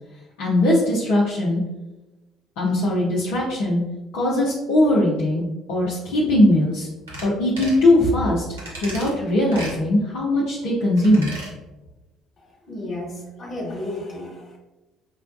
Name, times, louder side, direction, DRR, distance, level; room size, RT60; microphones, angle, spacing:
voice 1, 0.4-1.6 2.6-3.8 4.1-5.4 5.7-6.9 7.2-8.4 8.8-11.3, left 1 dB, 65° left, -6 dB, 0.6 m, -20 dB
sound 1, 7.1-7.3 7.6-7.8 8.6-9.1 9.5-9.8 11.0-11.5 11.9-12.0, right 1 dB, 85° right, 0.9 m, -34 dB
voice 2, 12.7-14.6, left 1 dB, 45° left, -2 dB, 1.3 m, -32 dB
5.4 x 2.2 x 2.5 m, 1.1 s
hypercardioid pair, 55°, 0 cm